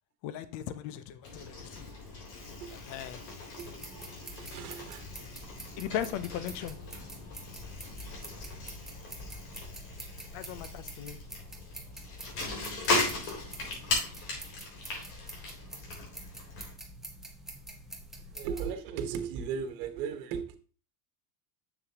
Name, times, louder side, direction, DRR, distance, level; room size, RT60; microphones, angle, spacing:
voice 1, 0.2-1.9 2.7-3.2 5.8-6.8 10.3-11.2, left 10 dB, 45° left, 13 dB, 0.6 m, -38 dB
Bicycle, 1.2-16.7, left 3 dB, 65° left, 3.7 m, -38 dB
sound 1, 3.6-18.7, right 1 dB, ahead, 0.6 m, -47 dB
voice 2, 3.6-5.1 18.3-20.5, right 7 dB, 70° right, 7 dB, 1.4 m, -37 dB
7.1 x 7.0 x 2.9 m, 0.38 s
cardioid pair, 170°, 44 cm